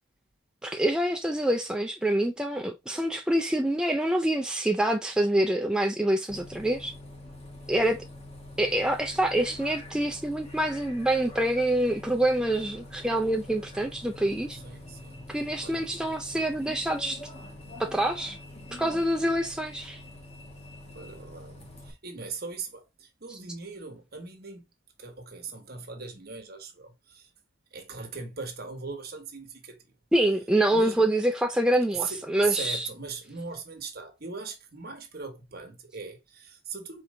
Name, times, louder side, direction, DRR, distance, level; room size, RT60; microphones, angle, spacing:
voice 1, 0.6-6.9 7.7-8.1 8.6-14.6 15.3-17.2 17.8-18.4 18.7-20.0 23.3-23.4 30.1-32.9, right 1 dB, 5° right, 0.3 m, -26 dB
Bus, 6.3-21.9, left 1 dB, 30° left, 1.1 m, -45 dB
voice 2, 14.6-15.2 15.6-15.9 20.9-24.6 25.0-27.3 27.7-29.8 30.7-31.0 31.9-37.0, right 5 dB, 50° right, 1.3 m, -39 dB
4.5 x 3.2 x 3.7 m
head